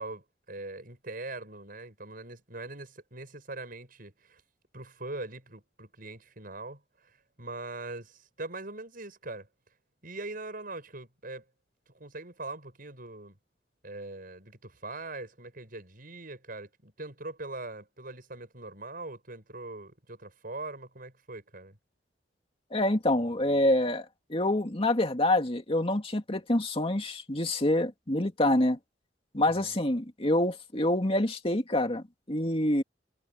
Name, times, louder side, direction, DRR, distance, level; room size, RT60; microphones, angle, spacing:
voice 1, 0.0-4.4 4.7-9.5 10.0-11.4 11.9-13.4 13.8-21.8 29.5-29.8, right 2 dB, 55° right, 7.0 m, -42 dB
voice 2, 22.7-28.8 29.3-32.8, left 1 dB, 30° left, 2.4 m, -26 dB
head